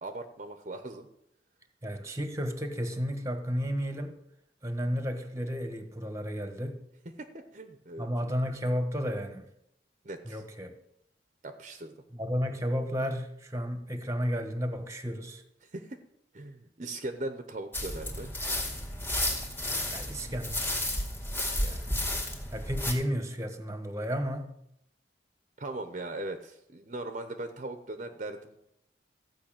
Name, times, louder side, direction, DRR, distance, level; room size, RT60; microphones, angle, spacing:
voice 1, 0.0-1.1 7.2-8.1 10.0-10.4 11.4-11.9 15.6-16.0 16.3-18.3 25.6-28.6, right 2 dB, 45° right, 7 dB, 0.9 m, -39 dB
voice 2, 1.8-4.2 4.6-6.8 8.0-9.5 10.2-10.8 12.1-15.4 19.9-20.6 21.6-21.9 22.5-24.5, equal, 20° right, 7 dB, 1.3 m, -32 dB
sound 1, 17.7-22.9, left 1 dB, 10° left, 2.2 m, -32 dB
14.5 x 5.6 x 8.8 m, 0.78 s
head